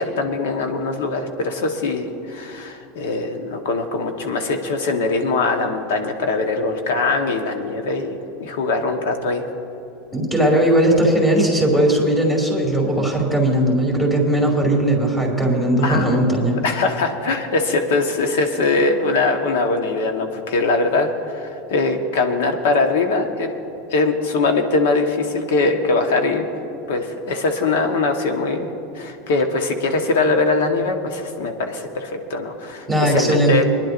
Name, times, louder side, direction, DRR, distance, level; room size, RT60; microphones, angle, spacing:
voice 1, 0.0-9.5 15.8-16.2 16.6-23.5 23.9-26.4 26.9-28.7 28.9-33.6, left 3 dB, 80° left, 5 dB, 1.2 m, -21 dB
voice 2, 10.1-16.6 32.9-33.6, right 1 dB, 10° left, -1 dB, 2.6 m, -18 dB
24.5 x 10.5 x 2.6 m, 3.0 s
supercardioid pair, 110°, 0 cm